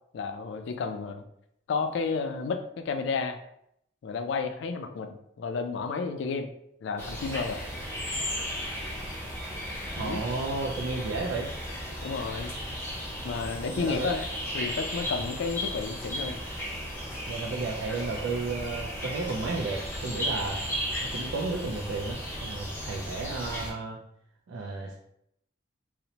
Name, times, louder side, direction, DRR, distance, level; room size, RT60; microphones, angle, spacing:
voice 1, 0.1-1.2 1.7-3.4 4.0-6.5 6.8-7.6 10.0-10.2 12.0-12.5 13.2-14.2 14.5-16.4, left 4 dB, 70° left, 7 dB, 0.3 m, -31 dB
sound 1, 7.0-23.7, equal, 10° left, 0.6 m, -35 dB
voice 2, 10.0-11.5 13.7-14.1 15.0-15.1 17.3-20.6 21.1-24.0 24.5-25.0, right 3 dB, 80° right, -2 dB, 0.4 m, -33 dB
2.7 x 2.0 x 2.8 m, 0.75 s
head